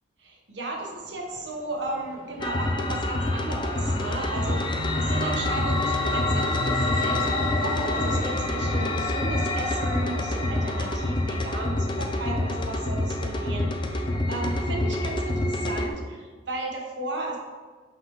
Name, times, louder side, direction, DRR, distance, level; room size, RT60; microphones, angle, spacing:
voice 1, 0.2-17.4, right 2 dB, 80° right, -1 dB, 1.2 m, -35 dB
Fixed-wing aircraft airplane, 0.8-11.0, right 1 dB, 50° right, 0.5 m, -36 dB
sound 1, 2.4-15.9, left 2 dB, 25° left, 0.5 m, -27 dB
5.7 x 5.7 x 3.1 m, 1.5 s
head